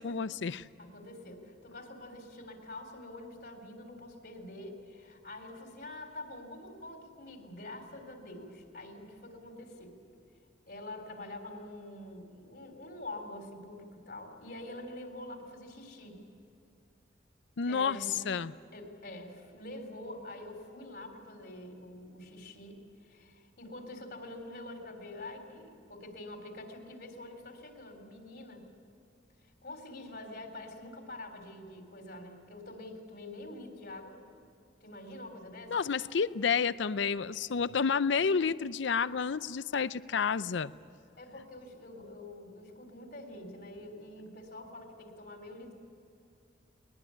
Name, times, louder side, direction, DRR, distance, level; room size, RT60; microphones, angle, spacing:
voice 1, 0.0-0.7 17.6-18.5 35.7-40.7, left 6 dB, 80° left, 16 dB, 0.5 m, -30 dB
voice 2, 0.8-10.0 10.7-16.2 17.7-18.4 18.7-28.7 29.6-34.2 34.8-35.8 41.2-45.8, left 1 dB, 55° left, 4 dB, 3.8 m, -46 dB
21.5 x 20.5 x 9.9 m, 2.4 s
head